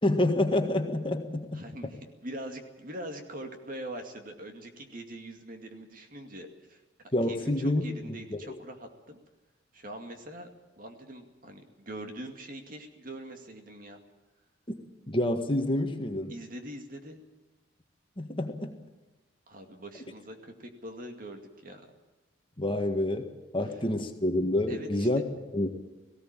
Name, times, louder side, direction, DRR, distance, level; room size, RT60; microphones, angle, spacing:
voice 1, 0.0-1.9 7.1-8.4 15.1-16.3 18.2-18.8 22.6-25.2 25.5-25.7, left 1 dB, 25° left, 5 dB, 1.7 m, -28 dB
voice 2, 1.5-9.2 9.7-10.5 10.8-14.0 16.3-17.2 19.5-21.9 24.7-25.1, right 1 dB, 45° right, 5 dB, 2.3 m, -43 dB
18.5 x 16.5 x 9.0 m, 1.1 s
head